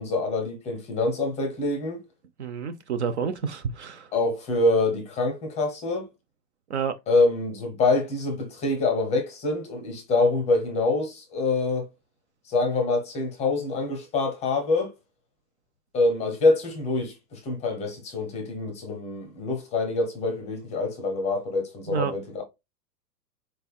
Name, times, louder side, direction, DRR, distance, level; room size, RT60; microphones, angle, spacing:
voice 1, 0.0-2.0 4.1-6.1 7.1-11.9 12.5-14.9 15.9-22.4, left 2 dB, 15° left, 0.7 m, -25 dB
voice 2, 2.4-4.1 6.7-6.9 21.9-22.1, right 6 dB, 45° right, 0.5 m, -29 dB
4.2 x 3.3 x 2.2 m
figure-of-eight pair, 105°, 49 cm